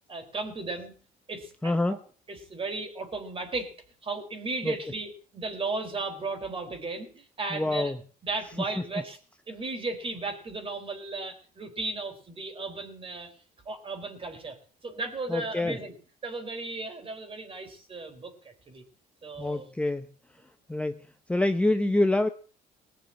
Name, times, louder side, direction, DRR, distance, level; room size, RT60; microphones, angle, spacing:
voice 1, 0.1-0.9 1.3-2.0 2.3-3.7 4.0-7.9 8.2-9.2 9.5-13.3 13.7-14.6 14.8-15.9 16.2-18.8 19.2-19.7, right 3 dB, 30° right, 6 dB, 4.2 m, -35 dB
voice 2, 1.6-2.0 4.6-4.7 7.5-8.0 8.8-8.9 15.3-15.8 19.4-20.1 20.7-22.3, left 2 dB, 5° left, 7 dB, 0.9 m, -26 dB
19.5 x 6.9 x 8.7 m, 0.43 s
cardioid pair, 110°, 17 cm